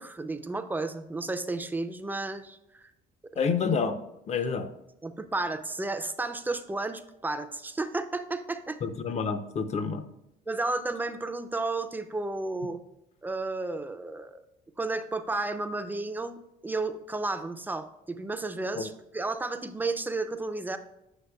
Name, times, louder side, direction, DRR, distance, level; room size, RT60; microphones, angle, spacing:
voice 1, 0.0-2.9 3.3-3.4 5.0-8.8 10.5-12.8 13.2-14.4 14.8-20.8, right 2 dB, 10° right, 9 dB, 0.4 m, -32 dB
voice 2, 3.4-4.0 4.3-4.7 8.8-10.1 18.8-18.9, left 5 dB, 40° left, 10 dB, 0.6 m, -28 dB
8.0 x 5.8 x 2.3 m, 0.89 s
cardioid pair, 110°, 17 cm